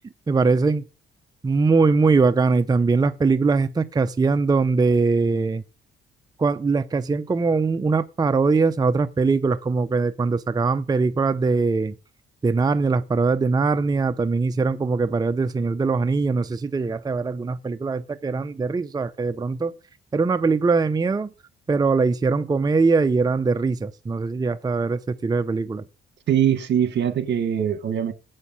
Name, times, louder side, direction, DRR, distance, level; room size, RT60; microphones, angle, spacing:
voice 1, 0.3-0.9 1.4-5.6 6.4-11.9 12.4-19.7 20.1-21.3 21.7-25.8, right 4 dB, 20° right, 0.5 m, -21 dB
voice 2, 26.3-28.1, right 9 dB, 65° right, 1.5 m, -22 dB
8.1 x 6.4 x 7.4 m
cardioid pair, 90°, 20 cm